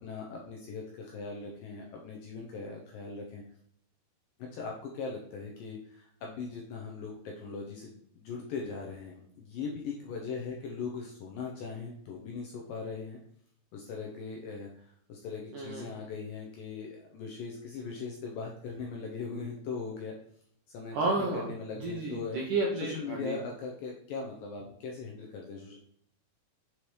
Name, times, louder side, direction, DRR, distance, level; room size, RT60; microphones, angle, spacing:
voice 1, 0.0-3.4 4.4-13.2 13.7-20.2 20.7-22.4 22.7-25.8, left 4 dB, 75° left, -1 dB, 2.0 m, -40 dB
voice 2, 15.5-15.9 20.9-21.5 21.8-23.4, right 3 dB, 75° right, -3 dB, 1.9 m, -31 dB
6.9 x 4.4 x 3.2 m, 0.68 s
omnidirectional pair, 4.7 m